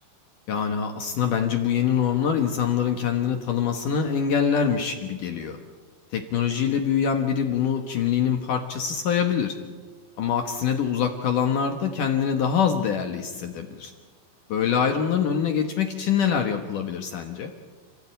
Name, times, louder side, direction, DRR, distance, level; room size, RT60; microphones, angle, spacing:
voice 1, 0.5-5.6 6.1-9.5 10.2-13.9 14.5-17.5, left 7 dB, 70° left, 4 dB, 2.1 m, -24 dB
29.5 x 15.5 x 9.0 m, 1.4 s
omnidirectional pair, 5.5 m